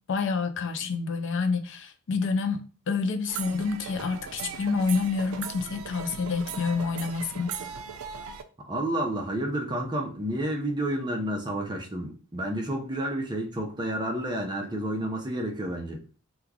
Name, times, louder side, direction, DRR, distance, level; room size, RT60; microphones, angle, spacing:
voice 1, 0.1-2.6 2.9-7.6, left 4 dB, 60° left, 0.5 m, -28 dB
sound 1, 3.3-8.4, right 6 dB, 80° right, 0.4 m, -38 dB
voice 2, 8.7-16.0, right 1 dB, 20° right, 0.6 m, -30 dB
2.9 x 2.3 x 3.6 m
head